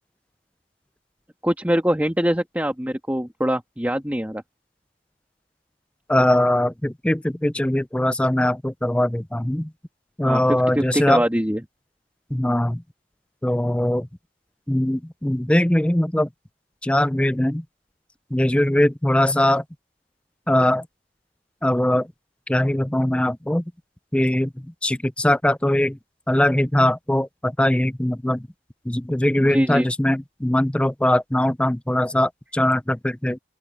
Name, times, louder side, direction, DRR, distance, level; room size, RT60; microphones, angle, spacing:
voice 1, 1.4-4.4 10.2-10.4 10.7-11.6 29.4-29.9, equal, 10° right, 1.7 m, -23 dB
voice 2, 6.1-9.7 10.2-11.2 12.3-12.8 13.4-14.1 14.7-16.3 16.8-17.6 18.3-19.6 20.5-20.8 21.6-22.1 22.5-23.6 24.1-24.5 24.8-26.0 26.3-28.5 28.9-33.4, left 1 dB, 5° left, 0.4 m, -21 dB
open air
head